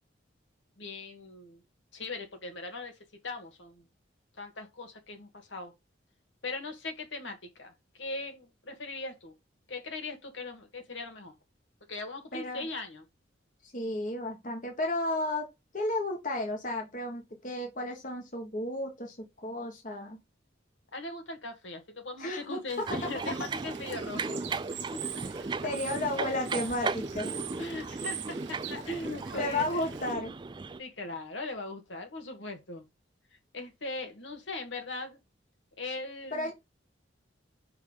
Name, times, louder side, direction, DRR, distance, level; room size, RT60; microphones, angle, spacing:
voice 1, 0.8-1.6 1.9-3.0 3.2-3.9 4.3-5.7 6.4-7.7 8.0-9.3 9.7-11.3 11.9-13.0 20.9-24.4 24.9-25.0 27.2-29.6 30.8-32.8 33.5-35.2 35.8-36.5, left 2 dB, 75° left, 2.0 m, -39 dB
voice 2, 12.3-12.7 13.6-15.5 15.7-20.2 22.2-22.9 25.6-27.3 29.3-30.3 36.3-36.5, left 1 dB, 45° left, 1.4 m, -33 dB
Bird / Water, 22.7-30.1, right 9 dB, 70° right, 1.1 m, -44 dB
sound 1, 22.9-30.8, right 3 dB, 25° right, 0.3 m, -36 dB
5.5 x 4.6 x 5.4 m
head